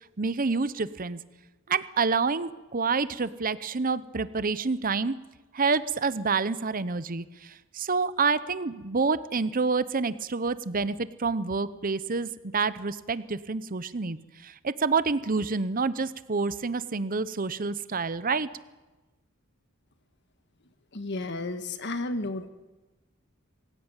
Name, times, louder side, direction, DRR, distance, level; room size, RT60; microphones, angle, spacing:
voice 1, 0.2-1.2 1.7-5.2 5.5-18.5, right 4 dB, 40° right, 15 dB, 0.8 m, -28 dB
voice 2, 20.9-22.5, left 2 dB, 55° left, 9 dB, 1.5 m, -32 dB
25.5 x 16.0 x 9.0 m, 1.1 s
head